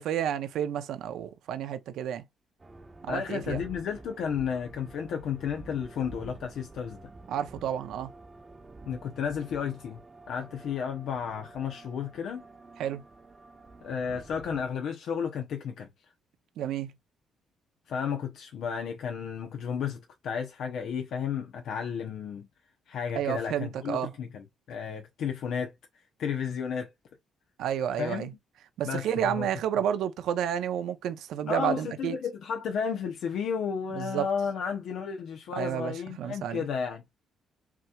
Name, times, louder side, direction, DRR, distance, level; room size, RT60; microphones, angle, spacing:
voice 1, 0.0-2.2 3.0-3.6 7.3-8.1 12.8-13.0 16.6-16.9 23.1-24.1 27.6-28.3 28.8-32.2 34.0-34.3 35.6-36.6, right 9 dB, 80° right, 0.7 m, -30 dB
sound 1, 2.6-14.7, right 3 dB, 20° right, 1.0 m, -49 dB
voice 2, 3.1-7.0 8.9-10.0 10.3-12.4 13.8-15.9 17.9-22.5 22.9-25.7 26.2-26.9 28.0-28.3 28.8-29.5 31.5-37.0, left 7 dB, 70° left, 0.8 m, -33 dB
5.9 x 3.0 x 2.3 m
cardioid pair, 125°, 0 cm